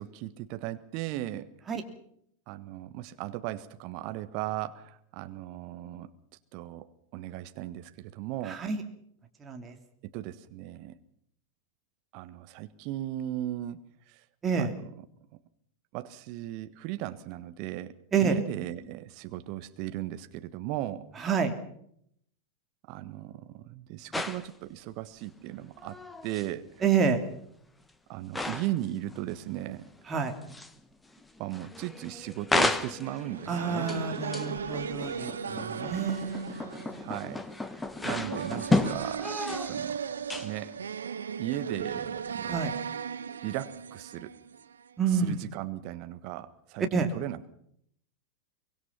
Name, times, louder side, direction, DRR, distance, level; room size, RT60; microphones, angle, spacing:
voice 1, 0.0-1.5 2.5-6.1 6.5-8.6 10.1-11.0 12.1-14.2 14.6-14.7 15.9-17.9 18.2-21.1 22.9-26.8 28.1-29.9 31.4-33.9 37.0-37.4 38.0-40.0 40.4-40.8 41.4-42.7 43.4-44.3 45.1-47.6, right 14 dB, 45° right, 11 dB, 1.5 m, -37 dB
voice 2, 8.5-8.8 9.4-9.8 14.4-14.7 18.1-18.3 21.2-21.5 26.8-27.2 30.1-30.3 33.5-36.6 42.5-42.7 45.0-45.4 46.9-47.1, right 6 dB, 20° right, 4 dB, 3.0 m, -28 dB
sound 1, 24.1-24.5 25.8-26.5 27.1-27.2 28.3-28.8 29.1-29.5 29.9-30.8 31.1-39.9 40.2-40.8, left 2 dB, 10° left, 1.3 m, -33 dB
sound 2, 33.0-44.9, right 7 dB, 70° right, 0.8 m, -37 dB
24.0 x 21.5 x 5.8 m, 0.69 s
figure-of-eight pair, 90°, 0 cm